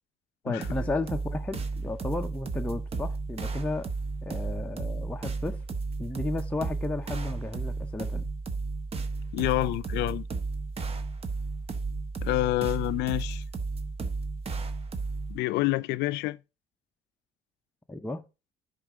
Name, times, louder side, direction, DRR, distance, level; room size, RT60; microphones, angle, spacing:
voice 1, 0.4-3.9 4.2-5.6 6.0-8.3 17.9-18.3, left 2 dB, 10° left, 0.7 m, -33 dB
sound 1, 0.6-15.4, right 4 dB, 35° right, 1.0 m, -33 dB
voice 2, 9.3-10.2 12.2-13.4 15.3-16.4, left 19 dB, 85° left, 0.4 m, -27 dB
10.0 x 5.2 x 3.6 m
cardioid pair, 110°, 17 cm